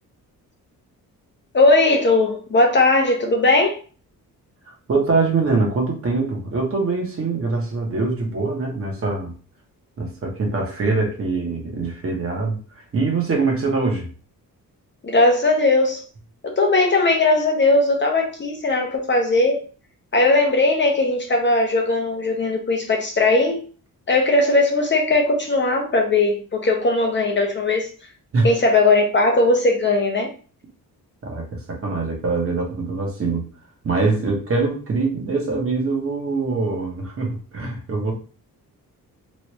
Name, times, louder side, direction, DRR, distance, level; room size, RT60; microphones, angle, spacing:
voice 1, 1.5-3.8 15.0-16.0 16.4-19.6 20.1-23.6 24.1-27.9 28.4-30.3, left 2 dB, 30° left, 0.6 m, -18 dB
voice 2, 4.9-9.3 10.0-12.6 12.9-14.1 28.3-28.5 31.2-33.5 33.8-38.1, right 3 dB, 40° right, 0.9 m, -23 dB
3.1 x 2.4 x 2.9 m
wide cardioid pair, 155°, 36 cm